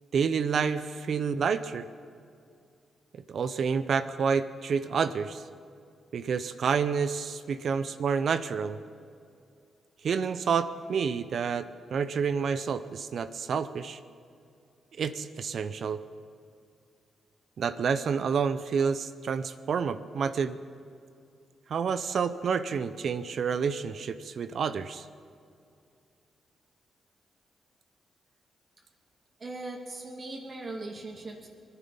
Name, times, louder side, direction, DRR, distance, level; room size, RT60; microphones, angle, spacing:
voice 1, 0.1-1.9 3.1-5.4 6.1-8.8 10.0-14.0 15.0-16.0 17.6-20.6 21.7-25.1, right 6 dB, 65° right, 12 dB, 0.6 m, -29 dB
voice 2, 29.4-31.5, right 2 dB, 45° right, -1 dB, 2.3 m, -39 dB
20.5 x 10.5 x 5.5 m, 2.4 s
cardioid pair, 65°, 0 cm